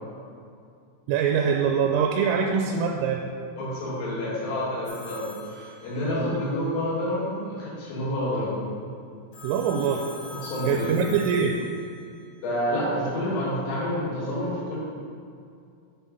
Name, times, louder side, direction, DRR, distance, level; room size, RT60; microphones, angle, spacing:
voice 1, 1.1-3.3 9.4-10.0 10.7-11.6, right 6 dB, 90° right, 2 dB, 3.2 m, -23 dB
voice 2, 3.6-8.6 10.3-11.0 12.4-14.8, left 1 dB, 80° left, -8 dB, 4.8 m, -28 dB
Telephone, 4.8-6.4 9.3-12.2, left 3 dB, 60° left, 2.5 m, -43 dB
8.6 x 4.6 x 5.2 m, 2.4 s
omnidirectional pair, 5.7 m